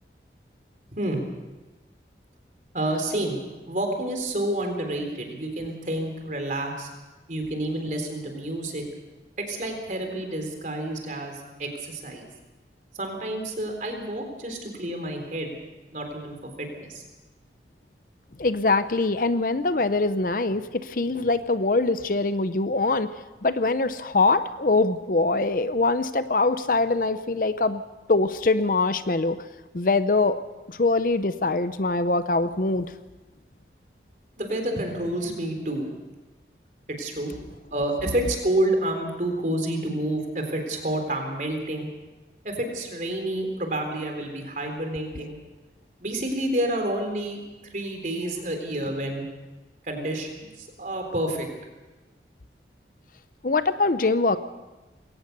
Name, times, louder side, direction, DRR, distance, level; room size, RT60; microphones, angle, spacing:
voice 1, 0.9-1.2 2.7-3.4 3.7-6.9 7.3-8.8 9.4-12.3 13.0-15.6 15.9-17.0 34.4-35.9 37.0-37.3 37.7-41.9 42.4-45.4 46.0-47.4 47.7-49.2 49.8-50.3 50.6-51.5, right 1 dB, 45° right, 4 dB, 3.8 m, -29 dB
voice 2, 18.4-23.1 23.4-27.8 28.1-29.4 29.7-30.4 30.7-32.9 53.4-54.4, left 3 dB, 50° left, 12 dB, 0.7 m, -23 dB
21.5 x 17.5 x 6.8 m, 1.1 s
head